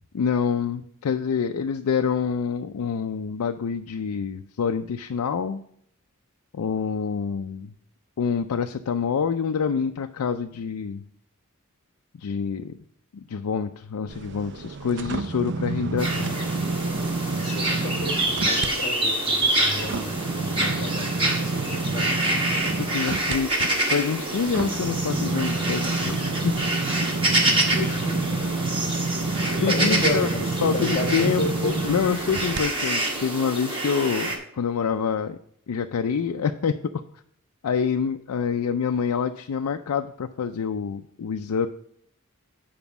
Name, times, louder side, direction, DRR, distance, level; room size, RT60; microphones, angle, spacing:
voice 1, 0.1-5.6 6.5-7.7 8.2-11.0 12.2-12.7 13.3-16.3 22.8-26.5 29.6-30.3 30.6-35.4 35.7-36.8 37.6-41.7, left 6 dB, 85° left, 6 dB, 0.4 m, -26 dB
sound 1, 14.1-18.7 19.1-32.6 33.1-33.2, right 3 dB, 55° right, 0.5 m, -29 dB
sound 2, 16.0-34.4, right 1 dB, 25° right, 1.5 m, -27 dB
voice 2, 17.3-22.6 27.7-28.5 29.5-32.1, left 1 dB, 30° left, 4 dB, 1.6 m, -32 dB
7.1 x 5.1 x 6.9 m, 0.66 s
head